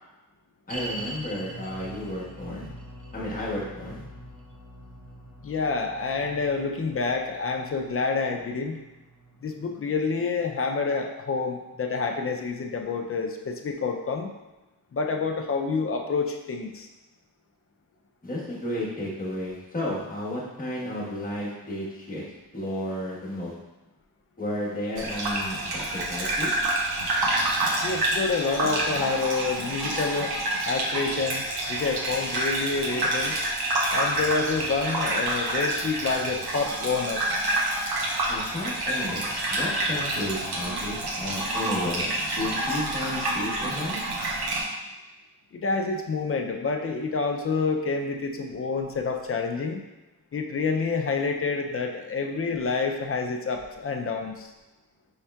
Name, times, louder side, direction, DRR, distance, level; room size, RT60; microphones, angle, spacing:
voice 1, 0.7-2.7 3.1-4.0 18.2-22.2 22.5-23.5 24.4-26.5 38.3-44.0, left 1 dB, 20° left, -6 dB, 1.2 m, -32 dB
sound 1, 0.7-12.0 12.2-12.3 13.0-13.1, right 1 dB, 35° right, 0.8 m, -43 dB
voice 2, 5.4-8.8 9.4-14.3 14.9-16.9 27.7-30.3 30.6-33.4 33.9-37.2 45.5-49.8 50.3-54.5, left 4 dB, 40° left, 3 dB, 0.4 m, -28 dB
Gurgling / Bathtub (filling or washing), 25.0-44.6, right 1 dB, 80° right, 0.8 m, -28 dB
5.5 x 3.5 x 2.3 m, 1.1 s
wide cardioid pair, 115°, 37 cm